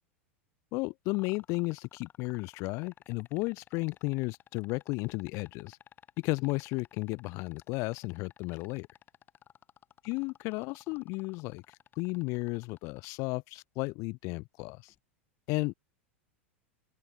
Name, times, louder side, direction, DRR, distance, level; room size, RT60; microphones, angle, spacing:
voice 1, 0.7-5.8 6.2-8.9 10.1-11.6 11.9-14.9 15.5-15.7, left 26 dB, 45° left, 1.6 m, -34 dB
sound 1, 1.1-13.2 14.9-15.0, left 10 dB, 30° left, 4.8 m, -55 dB
open air
figure-of-eight pair, 90°, 7 cm